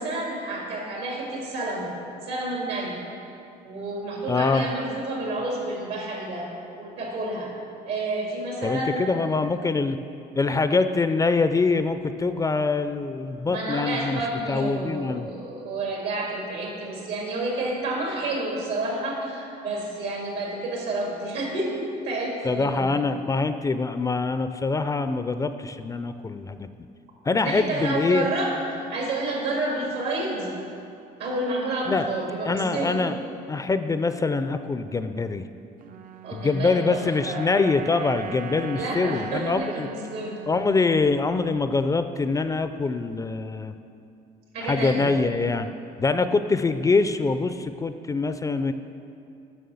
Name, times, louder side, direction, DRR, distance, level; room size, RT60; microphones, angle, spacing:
voice 1, 0.0-2.0 2.2-3.0 3.6-6.5 6.8-7.5 7.8-9.1 13.5-22.9 27.4-28.5 28.9-30.5 31.2-33.0 36.2-37.5 38.7-40.4 44.5-45.1, right 2 dB, 85° right, -2 dB, 2.4 m, -30 dB
voice 2, 4.3-4.7 8.6-10.0 10.4-14.2 14.5-15.3 22.4-26.7 27.2-28.3 31.9-32.1 32.4-33.2 33.5-35.4 36.3-39.9 40.5-43.7 44.6-45.7 46.0-48.7, left 3 dB, 20° left, 10 dB, 0.3 m, -24 dB
sound 1, 35.8-42.2, right 7 dB, 55° right, 0.4 m, -40 dB
7.6 x 6.0 x 7.0 m, 2.6 s
cardioid pair, 110°, 17 cm